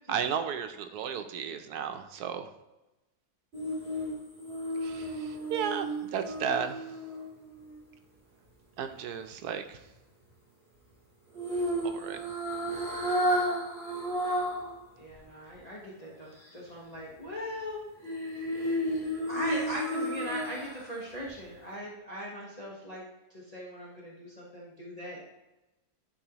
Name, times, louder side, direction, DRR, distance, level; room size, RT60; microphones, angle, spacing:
voice 1, 0.1-2.5 4.8-6.8 8.8-9.8 11.8-12.2, right 7 dB, 85° right, 8 dB, 1.2 m, -34 dB
sound 1, 3.5-7.8 11.3-14.7 15.1-15.2 18.0-20.9 21.3-21.4, equal, 30° right, 3.2 m, -32 dB
voice 2, 14.9-17.8 19.1-23.0 23.3-25.2, equal, 25° left, -5 dB, 1.3 m, -39 dB
11.5 x 4.7 x 3.0 m, 1.0 s
omnidirectional pair, 1.6 m